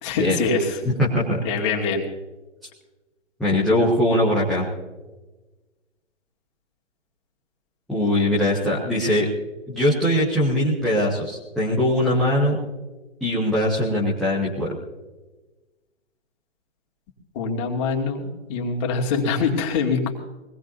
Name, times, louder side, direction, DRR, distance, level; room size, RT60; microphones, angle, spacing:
voice 1, 0.0-0.8 1.4-2.0 17.3-20.1, left 4 dB, 25° left, 1 dB, 2.4 m, -24 dB
voice 2, 0.8-1.4 3.4-4.7 7.9-9.3 9.7-12.6 13.2-14.7, left 1 dB, ahead, -8 dB, 0.5 m, -21 dB
23.0 x 18.5 x 2.7 m, 1.2 s
figure-of-eight pair, 145°, 36 cm